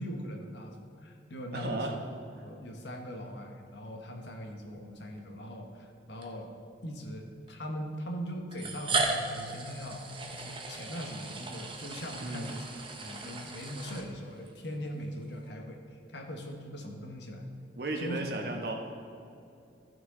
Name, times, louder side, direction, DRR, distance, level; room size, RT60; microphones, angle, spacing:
voice 1, 0.0-2.0 2.4-6.5 6.8-10.0 10.3-15.8 16.1-17.4 18.0-18.2, equal, 80° left, 1 dB, 1.4 m, -41 dB
voice 2, 1.5-2.0 12.2-12.5 17.8-18.7, right 2 dB, 60° right, 1 dB, 1.3 m, -34 dB
sound 1, 5.0-5.2 6.2-6.3 7.5-7.6 8.5-14.5, right 3 dB, 30° right, 0.9 m, -36 dB
Keyboard (musical), 8.9-11.9, left 5 dB, 45° left, 0.9 m, -51 dB
14.5 x 6.2 x 4.0 m, 2.6 s
head